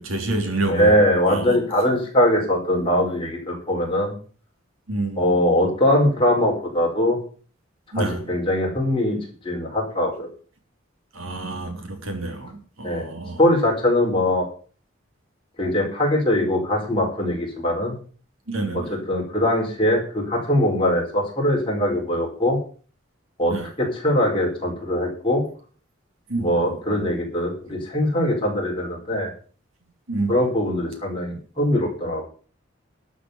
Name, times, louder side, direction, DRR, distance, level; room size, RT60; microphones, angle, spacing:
voice 1, 0.0-1.6 4.9-5.4 7.9-8.4 11.1-13.4 18.5-19.0 23.5-23.7 26.3-27.1 30.1-30.4, right 2 dB, 85° right, 3.3 m, -29 dB
voice 2, 0.7-4.1 5.2-7.2 7.9-9.2 9.4-10.3 12.8-13.0 13.4-14.4 15.6-18.0 18.7-18.8 19.1-22.6 23.4-25.4 26.4-29.3 30.3-32.2, left 1 dB, 25° left, 4.7 m, -21 dB
12.5 x 6.3 x 8.1 m
head